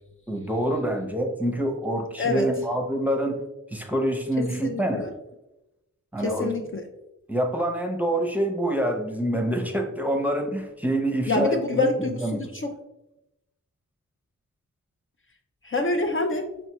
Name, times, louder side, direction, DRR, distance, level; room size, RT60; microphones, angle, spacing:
voice 1, 0.3-3.4 3.7-5.1 6.1-6.5 7.3-12.4, right 1 dB, 5° right, 2 dB, 0.7 m, -26 dB
voice 2, 4.6-5.1 6.2-6.9 11.3-12.7 15.6-16.5, left 3 dB, 40° left, 3 dB, 0.5 m, -26 dB
5.2 x 3.3 x 3.0 m, 0.91 s
wide cardioid pair, 85°, 33 cm